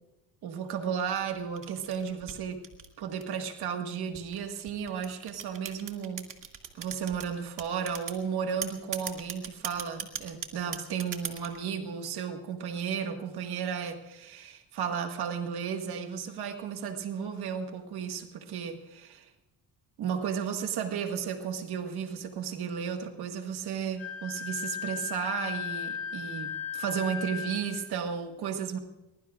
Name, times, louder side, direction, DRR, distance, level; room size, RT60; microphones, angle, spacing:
voice 1, 0.4-2.6 3.0-6.3 6.7-19.3 20.0-28.8, right 7 dB, 85° right, 5 dB, 1.8 m, -34 dB
sound 1, 1.0-3.5 4.1-7.3 7.6-8.2 8.6-11.6, right 8 dB, 55° right, 2.3 m, -38 dB
Wind instrument woodwind instrument, 24.0-27.8, left 7 dB, 25° left, 5.2 m, -36 dB
23.5 x 21.5 x 2.5 m, 1.0 s
cardioid pair, 130°, 37 cm